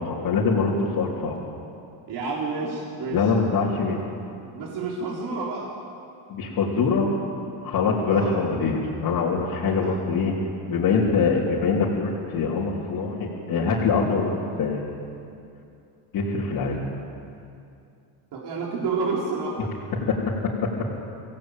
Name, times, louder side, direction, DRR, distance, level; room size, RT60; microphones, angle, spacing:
voice 1, 0.0-1.4 3.1-4.1 6.3-7.1 7.6-10.3 10.7-15.0 16.1-16.8 19.9-20.3 20.6-20.7, left 4 dB, 50° left, -6 dB, 3.5 m, -24 dB
voice 2, 2.1-3.3 4.5-5.7 8.1-8.4 9.8-10.0 18.3-19.7, right 4 dB, 55° right, -3 dB, 4.0 m, -29 dB
25.0 x 17.5 x 9.1 m, 2.6 s
cardioid pair, 130°, 47 cm